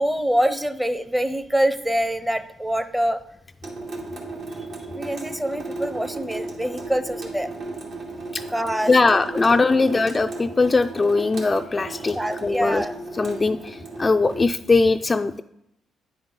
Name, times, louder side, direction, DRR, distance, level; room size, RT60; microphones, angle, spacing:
voice 1, 0.0-3.2 4.9-7.5 8.5-8.9 9.5-9.6 12.1-12.9, equal, 10° right, 11 dB, 0.7 m, -25 dB
Water tap faucet / Sink (filling or washing) / Drip, 3.6-14.4, right 2 dB, 65° right, 2.2 m, -35 dB
voice 2, 8.9-12.9 13.2-15.4, left 3 dB, 25° left, 7 dB, 0.3 m, -20 dB
9.7 x 5.1 x 5.5 m, 0.79 s
cardioid pair, 90°, 0 cm